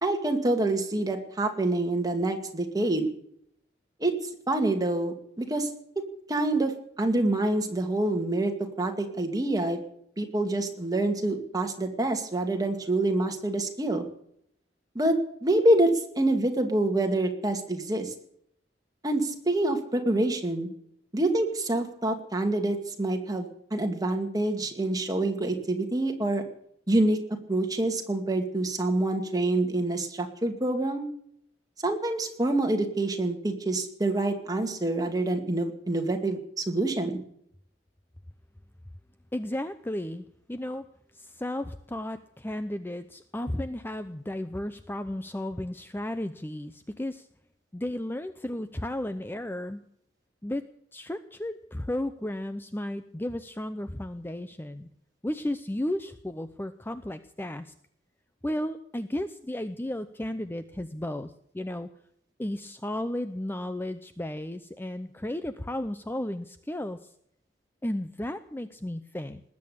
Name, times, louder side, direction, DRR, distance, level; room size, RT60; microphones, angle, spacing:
voice 1, 0.0-3.1 4.0-4.1 4.5-5.7 6.3-8.5 8.8-9.8 10.2-14.0 14.9-18.1 19.0-20.7 21.1-26.4 26.9-27.2 27.5-31.1 31.8-37.2, right 2 dB, 20° right, 4 dB, 2.3 m, -26 dB
voice 2, 39.3-40.8 41.1-47.3 47.7-49.8 50.4-50.6 50.9-54.9 55.2-57.7 58.4-61.9 62.4-67.1 67.8-69.4, left 1 dB, 10° left, 10 dB, 0.6 m, -34 dB
20.0 x 8.5 x 8.6 m, 0.69 s
head